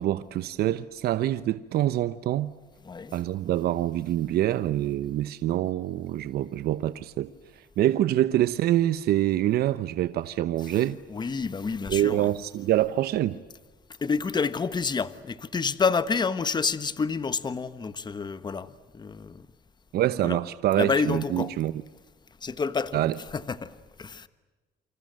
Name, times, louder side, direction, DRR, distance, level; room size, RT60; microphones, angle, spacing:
voice 1, 0.0-2.5 3.1-11.0 11.9-13.4 19.9-21.7 22.9-23.1, right 13 dB, 65° right, 0.9 m, -25 dB
voice 2, 2.8-3.2 10.6-10.8 11.1-12.3 14.0-19.5 20.2-20.4 20.7-21.5 22.4-23.0 23.3-24.3, left 5 dB, 25° left, 1.3 m, -29 dB
29.0 x 26.0 x 7.7 m
cardioid pair, 110°, 17 cm